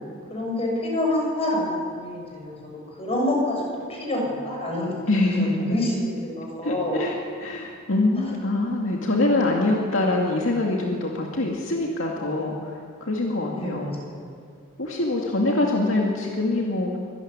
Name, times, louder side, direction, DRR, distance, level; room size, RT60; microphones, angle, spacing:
voice 1, 0.3-2.7 3.0-7.1 8.2-8.3 13.6-14.4, left 1 dB, 30° left, -1 dB, 6.9 m, -27 dB
voice 2, 5.1-5.8 6.6-13.9 14.8-17.0, left 2 dB, 70° left, -1 dB, 2.4 m, -24 dB
24.5 x 14.0 x 9.7 m, 2.2 s
head